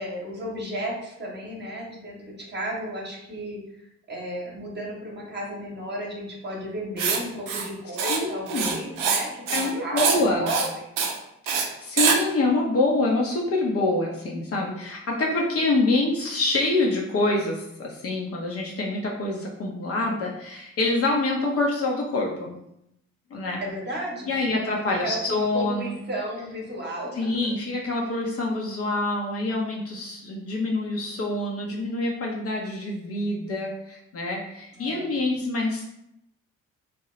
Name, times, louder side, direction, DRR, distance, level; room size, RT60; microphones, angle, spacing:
voice 1, 0.0-10.9 23.6-24.8 25.0-27.1 34.8-35.1, equal, 25° right, -2 dB, 1.0 m, -33 dB
Writing, 7.0-7.2 7.5-7.7 8.0-8.2 8.5-9.2 9.5-9.7 10.0-10.2 10.5-10.7 11.0-11.1 11.5-11.6 12.0-12.2, right 6 dB, 55° right, 0.5 m, -24 dB
voice 2, 8.1-8.8 9.5-10.5 11.5-22.6 23.3-23.6 24.3-26.0 27.2-35.9, left 2 dB, 35° left, -1 dB, 0.6 m, -26 dB
2.9 x 2.2 x 3.0 m, 0.81 s
figure-of-eight pair, 40°, 39 cm